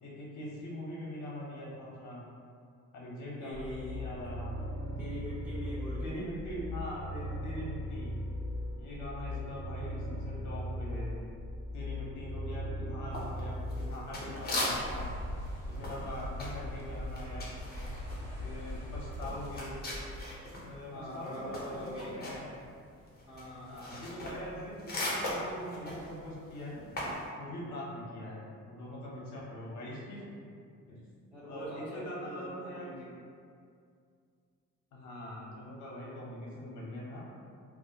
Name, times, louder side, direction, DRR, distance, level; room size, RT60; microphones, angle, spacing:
voice 1, 0.0-2.2 2.9-4.5 4.8-4.9 6.0-8.1 8.8-11.2 11.7-15.1 15.7-17.5 18.4-19.7 20.6-22.5 23.6-26.9 27.4-30.3 30.9-31.0 31.5-32.9 34.9-37.2, left 1 dB, 70° left, -5 dB, 0.7 m, -42 dB
voice 2, 3.4-4.0 5.0-6.3 20.9-22.2 23.2-24.0 31.3-33.1, equal, 5° right, -11 dB, 0.6 m, -43 dB
sound 1, 3.5-14.2, left 1 dB, 60° right, 1.0 m, -38 dB
sound 2, 13.1-15.1 15.4-20.7 21.0-27.2, left 1 dB, 30° left, 0.7 m, -38 dB
sound 3, 14.7-20.3, left 1 dB, 90° right, 0.8 m, -40 dB
2.3 x 2.0 x 2.7 m, 2.3 s
cardioid pair, 90°, 30 cm